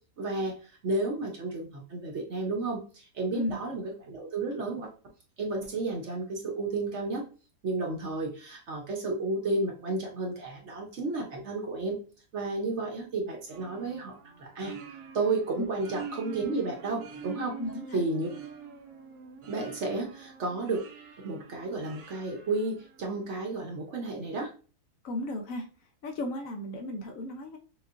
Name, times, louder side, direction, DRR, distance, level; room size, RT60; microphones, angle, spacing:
voice 1, 0.2-4.9 5.4-7.2 7.6-12.0 12.3-14.7 15.1-17.6 17.9-18.3 19.4-20.8 21.2-24.5, right 3 dB, 55° right, 1 dB, 1.0 m, -32 dB
sound 1, 13.5-23.3, right 6 dB, 75° right, 1.2 m, -45 dB
voice 2, 17.6-18.0 25.0-25.7 26.0-27.6, left 1 dB, 65° left, 4 dB, 1.0 m, -34 dB
6.1 x 2.4 x 2.5 m, 0.38 s
omnidirectional pair, 1.6 m